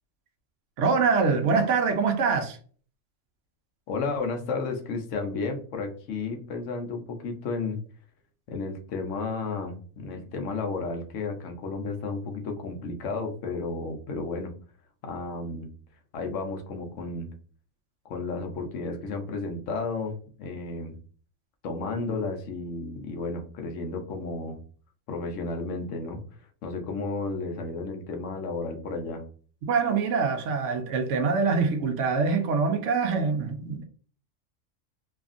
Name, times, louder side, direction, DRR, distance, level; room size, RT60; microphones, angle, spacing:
voice 1, 0.8-2.6 29.7-33.8, right 5 dB, 75° right, 0.9 m, -24 dB
voice 2, 3.9-7.8 8.5-14.6 15.0-15.7 16.1-17.3 18.0-21.0 21.6-24.6 25.1-26.2 26.6-29.2, left 3 dB, 75° left, 1.0 m, -32 dB
2.8 x 2.5 x 2.4 m
omnidirectional pair, 1.3 m